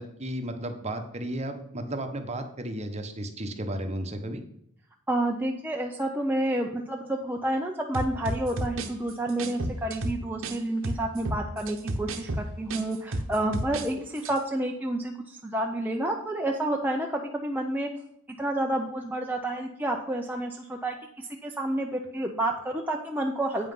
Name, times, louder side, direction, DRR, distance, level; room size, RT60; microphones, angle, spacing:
voice 1, 0.0-4.4, right 1 dB, 30° right, 6 dB, 1.0 m, -34 dB
voice 2, 5.1-17.9 18.4-23.7, right 1 dB, 10° right, 0 dB, 0.6 m, -29 dB
sound 1, 7.9-10.6 10.8-13.9 14.2-14.4, right 1 dB, 60° right, 1.0 m, -32 dB
8.7 x 5.7 x 5.5 m, 0.72 s
head